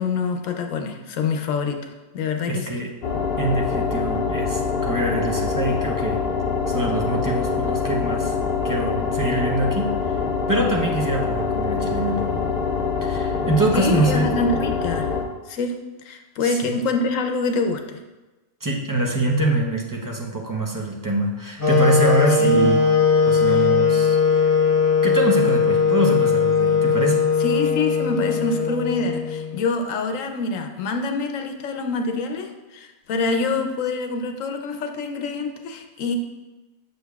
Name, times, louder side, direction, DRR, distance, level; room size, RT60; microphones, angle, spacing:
voice 1, 0.0-1.8 2.1-2.8 13.7-15.1 15.5-15.7 16.0-18.0 22.4-22.7 23.5-23.7 27.4-36.2, left 3 dB, 85° left, 4 dB, 1.0 m, -26 dB
voice 2, 2.5-2.9 3.4-6.2 6.7-8.3 8.6-9.9 10.5-12.5 13.0-14.3 16.4-16.7 18.6-22.8 23.2-24.6 25.0-27.3, right 2 dB, 25° right, -1 dB, 0.5 m, -24 dB
sound 1, 3.0-15.2, left 5 dB, 60° left, 0.8 m, -24 dB
sound 2, 21.6-29.6, left 5 dB, 15° left, 1.0 m, -19 dB
6.6 x 6.4 x 2.3 m, 1.1 s
omnidirectional pair, 1.3 m